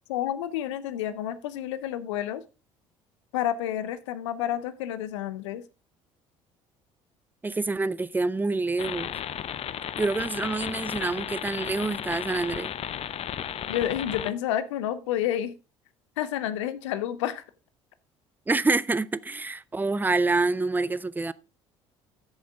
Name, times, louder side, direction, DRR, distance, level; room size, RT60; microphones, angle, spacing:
voice 1, 0.1-2.4 3.3-5.6 13.7-15.5 16.2-17.4, left 11 dB, 70° left, 0.8 m, -29 dB
voice 2, 7.4-9.1 10.0-12.7 18.5-21.3, right 3 dB, 10° right, 0.6 m, -27 dB
sound 1, 8.8-14.3, left 10 dB, 40° left, 0.6 m, -34 dB
13.5 x 7.2 x 3.5 m
figure-of-eight pair, 55°, 16 cm